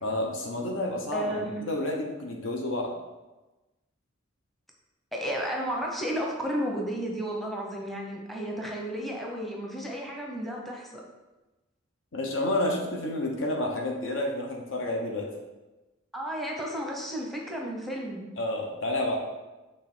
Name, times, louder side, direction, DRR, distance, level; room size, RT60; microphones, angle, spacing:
voice 1, 0.0-2.9 12.1-15.3 18.4-19.2, left 1 dB, 65° left, 1 dB, 1.1 m, -30 dB
voice 2, 1.1-1.5 5.1-10.9 16.1-18.3, equal, ahead, -1 dB, 0.8 m, -33 dB
6.4 x 3.7 x 6.1 m, 1.1 s
head